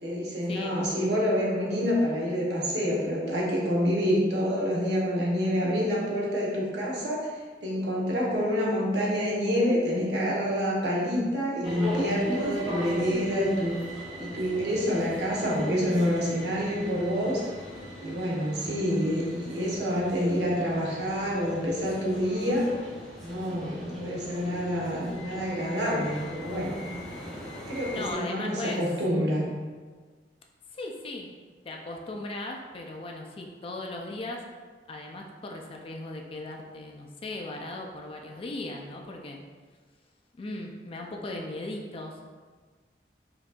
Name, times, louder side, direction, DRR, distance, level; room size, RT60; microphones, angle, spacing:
voice 1, 0.0-7.3 7.6-13.7 14.2-17.5 18.0-22.7 23.2-26.7 27.7-29.5, equal, 70° right, -5 dB, 1.0 m, -27 dB
sound 1, 11.6-28.1, equal, ahead, 0.9 m, -39 dB
voice 2, 27.9-28.8 30.7-31.3 31.6-34.5 34.9-39.4 40.4-42.2, left 2 dB, 30° left, 1 dB, 0.3 m, -38 dB
4.8 x 2.6 x 2.3 m, 1.5 s
head